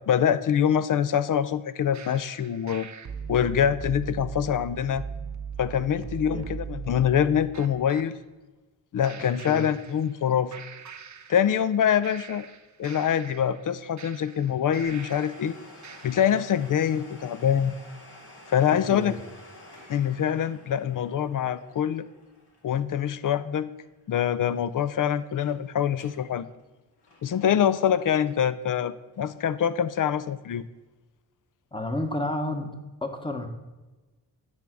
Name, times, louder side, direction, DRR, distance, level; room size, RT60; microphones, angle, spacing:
voice 1, 0.1-2.9 3.3-5.0 5.6-8.2 8.9-10.5 11.3-12.5 12.8-15.6 16.0-17.7 18.5-19.2 19.9-22.0 22.6-23.7 24.1-26.5 27.2-30.6, left 9 dB, 50° left, 15 dB, 0.5 m, -25 dB
sound 1, 1.9-8.1 9.0-10.3 10.5-11.7 12.0-15.5 15.8-16.5, right 6 dB, 40° right, 0.8 m, -40 dB
voice 2, 9.2-9.7 18.9-19.2 31.7-32.7 33.0-33.5, left 1 dB, 10° left, 5 dB, 1.2 m, -31 dB
Domestic sounds home sounds, 14.8-24.3 24.5-24.6 25.2-25.6 25.9-26.3 26.6-28.7 29.1-29.2 29.9-30.0, left 1 dB, 65° left, 2.1 m, -51 dB
9.2 x 3.5 x 6.0 m, 1.1 s
cardioid pair, 60°, 42 cm